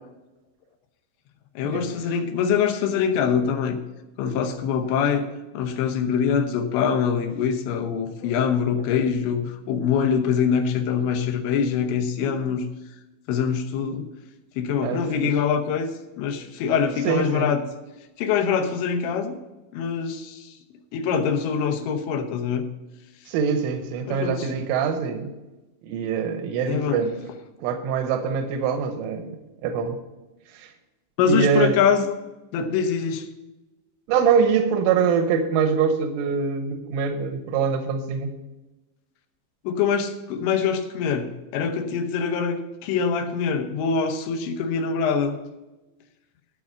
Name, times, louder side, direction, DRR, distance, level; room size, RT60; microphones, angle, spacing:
voice 1, 1.6-3.8 4.2-5.2 5.5-12.7 13.3-14.1 14.6-17.6 18.2-19.4 19.7-20.5 20.9-22.7 24.0-24.5 26.7-27.0 31.2-32.1 32.5-33.3 39.6-45.4, left 6 dB, 75° left, 6 dB, 3.0 m, -24 dB
voice 2, 14.8-15.3 17.0-17.5 23.3-25.3 25.8-27.1 27.6-29.3 29.6-30.0 30.5-30.7 31.3-31.8 34.1-38.3, right 6 dB, 85° right, 7 dB, 3.4 m, -24 dB
13.0 x 4.9 x 7.1 m, 1.1 s
omnidirectional pair, 5.5 m